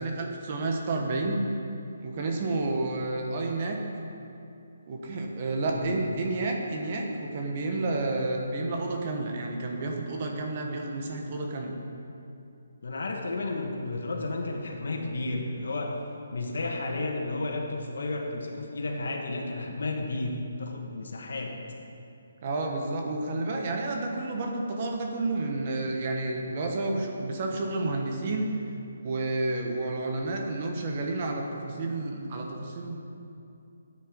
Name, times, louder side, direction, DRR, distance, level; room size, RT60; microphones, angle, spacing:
voice 1, 0.0-1.4 2.0-3.8 4.9-11.7 22.4-28.5 29.0-33.0, right 2 dB, 35° right, 1 dB, 1.4 m, -30 dB
voice 2, 12.8-16.0 16.3-21.6, left 2 dB, 75° left, 1 dB, 2.0 m, -32 dB
13.0 x 9.2 x 5.3 m, 2.7 s
hypercardioid pair, 165°, 0 cm